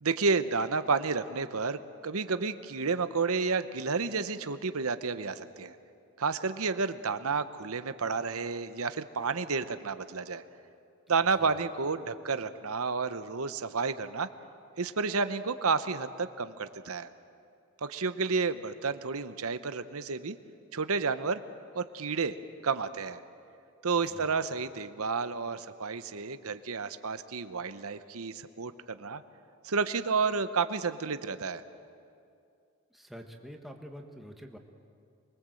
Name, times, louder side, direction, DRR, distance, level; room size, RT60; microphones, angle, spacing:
voice 1, 0.0-5.7 6.2-10.4 11.1-14.3 14.8-17.1 17.8-20.4 20.7-21.4 21.7-22.4 22.6-23.2 23.8-29.2 29.6-31.6, right 4 dB, 75° right, 11 dB, 0.9 m, -31 dB
voice 2, 32.9-34.6, equal, ahead, 2 dB, 1.5 m, -47 dB
25.0 x 22.5 x 7.8 m, 2.5 s
head